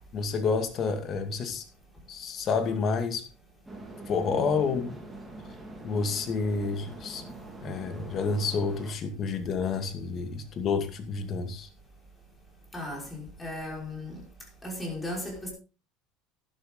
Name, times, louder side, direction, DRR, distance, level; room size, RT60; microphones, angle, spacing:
voice 1, 0.1-1.6 2.1-3.2 4.1-5.0 5.8-7.2 7.6-11.7, left 5 dB, 40° left, 2.2 m, -29 dB
sound 1, 3.7-8.9, right 2 dB, 5° right, 3.4 m, -44 dB
voice 2, 12.7-14.2 14.6-15.5, left 1 dB, 10° left, 5.6 m, -36 dB
11.5 x 11.5 x 3.9 m
cardioid pair, 135°, 0 cm